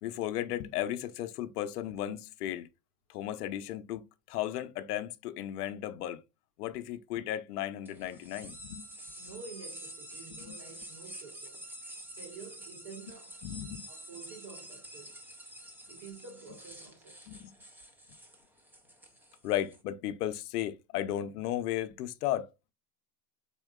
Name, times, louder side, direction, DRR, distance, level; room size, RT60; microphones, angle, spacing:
voice 1, 0.0-2.7 3.1-6.2 6.6-8.9 10.4-10.6 13.4-13.9 17.3-17.5 19.4-22.5, left 12 dB, 85° left, 0.7 m, -35 dB
sound 1, 7.8-19.8, right 1 dB, 5° right, 0.5 m, -48 dB
voice 2, 9.2-11.7 12.1-13.4 13.9-15.2 15.9-17.5, right 5 dB, 50° right, 2.7 m, -49 dB
4.4 x 3.6 x 2.3 m
supercardioid pair, 125°, 46 cm